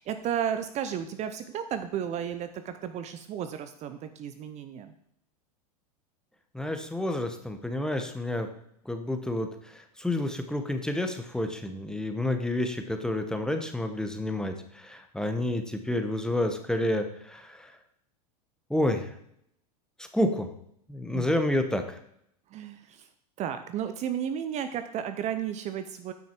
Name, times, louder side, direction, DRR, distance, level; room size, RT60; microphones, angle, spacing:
voice 1, 0.0-4.9 21.1-21.3 22.5-23.1 23.4-26.1, right 9 dB, 35° right, 9 dB, 0.6 m, -33 dB
voice 2, 6.5-8.5 8.9-17.7 18.7-19.1 20.0-20.5 20.9-22.0, left 1 dB, 5° left, 6 dB, 0.9 m, -29 dB
9.2 x 5.8 x 4.4 m, 0.73 s
hypercardioid pair, 110°, 20 cm